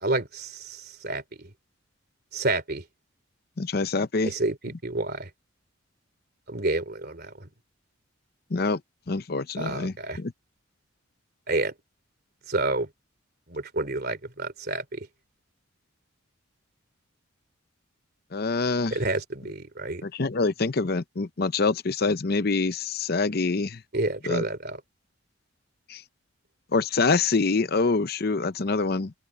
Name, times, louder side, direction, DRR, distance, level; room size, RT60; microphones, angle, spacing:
voice 1, 0.0-1.5 2.3-2.8 4.2-5.3 6.5-7.5 9.6-10.2 11.5-11.7 12.5-12.9 13.5-15.1 18.9-20.0 23.9-24.8, right 2 dB, 50° right, 3.0 m, -29 dB
voice 2, 3.6-4.3 8.5-8.8 9.1-10.3 18.3-19.0 20.0-23.8 24.3-24.4 25.9-26.0 26.7-29.1, left 3 dB, 50° left, 0.7 m, -25 dB
open air
head